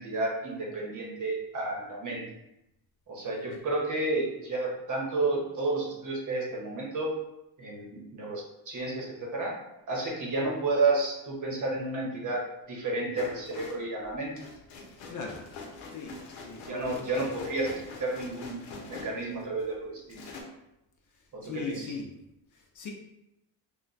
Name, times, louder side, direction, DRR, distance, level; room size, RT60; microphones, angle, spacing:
voice 1, 0.0-2.2 3.1-7.1 7.6-9.5 9.9-14.3 16.7-20.2 21.3-21.9, right 2 dB, 40° right, -2 dB, 0.9 m, -31 dB
sound 1, 13.2-19.7 20.1-20.4, left 3 dB, 90° left, 0.7 m, -44 dB
voice 2, 15.1-15.4 15.9-16.1 16.5-17.0 21.4-22.1 22.5-22.9, left 4 dB, 45° left, 1 dB, 0.5 m, -38 dB
2.2 x 2.1 x 3.8 m, 0.86 s
cardioid pair, 105°, 46 cm